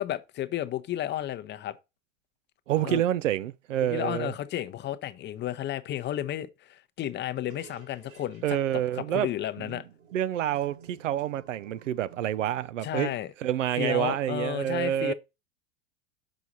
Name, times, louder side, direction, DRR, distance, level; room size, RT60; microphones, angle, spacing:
voice 1, 0.0-1.8 2.8-3.0 3.8-9.8 12.8-13.3 13.8-15.1, left 12 dB, 30° left, 0.7 m, -32 dB
voice 2, 2.7-4.3 8.4-9.3 9.6-9.8 10.1-13.1 13.4-15.1, right 12 dB, 80° right, 0.6 m, -28 dB
sound 1, 7.4-12.7, right 6 dB, 60° right, 3.0 m, -54 dB
6.2 x 4.7 x 4.1 m
hypercardioid pair, 95°, 37 cm